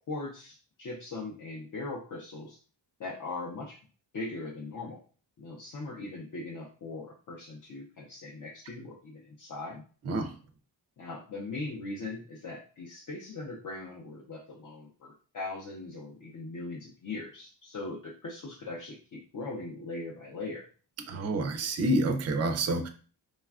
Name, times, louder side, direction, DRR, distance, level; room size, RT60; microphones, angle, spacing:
voice 1, 0.1-2.6 3.0-3.8 4.1-5.0 5.4-9.8 11.0-20.7, left 3 dB, 45° left, -2 dB, 0.6 m, -40 dB
voice 2, 21.1-22.9, right 2 dB, 40° right, 6 dB, 0.4 m, -28 dB
3.2 x 2.3 x 2.3 m, 0.39 s
wide cardioid pair, 115°, 44 cm